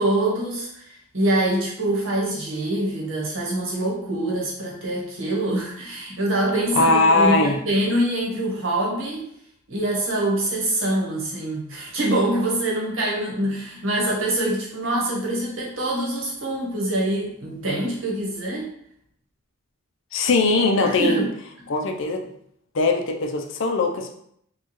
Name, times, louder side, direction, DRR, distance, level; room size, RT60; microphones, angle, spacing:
voice 1, 0.0-9.3 9.7-18.7 20.8-21.3, right 1 dB, 65° right, -3 dB, 1.2 m, -25 dB
voice 2, 6.8-7.6 20.1-21.2 21.7-22.3 22.7-24.2, left 3 dB, 60° left, 3 dB, 0.5 m, -20 dB
4.4 x 2.4 x 3.0 m, 0.70 s
head